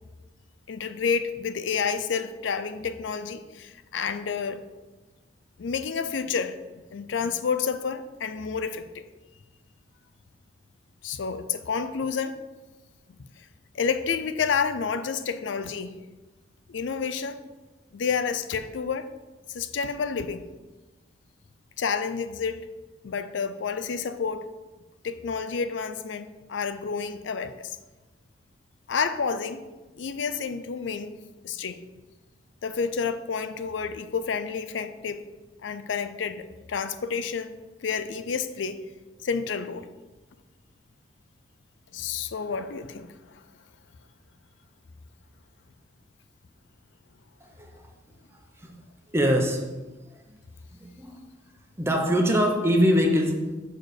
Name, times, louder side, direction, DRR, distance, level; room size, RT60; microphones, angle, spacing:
voice 1, 0.7-4.6 5.6-6.6 6.9-9.0 11.0-12.4 13.7-15.9 16.7-17.4 17.9-19.1 19.5-20.4 21.8-22.7 23.0-24.5 25.0-27.8 28.9-29.6 30.0-31.1 31.4-31.8 32.6-35.2 35.6-37.5 37.8-38.8 39.2-39.9 41.9-43.1, left 6 dB, 80° left, 11 dB, 0.5 m, -29 dB
voice 2, 47.4-47.8 48.6-48.7 49.1-49.7 50.7-51.2 51.8-53.6, equal, 15° right, 2 dB, 0.8 m, -23 dB
6.7 x 4.0 x 6.5 m, 1.2 s
head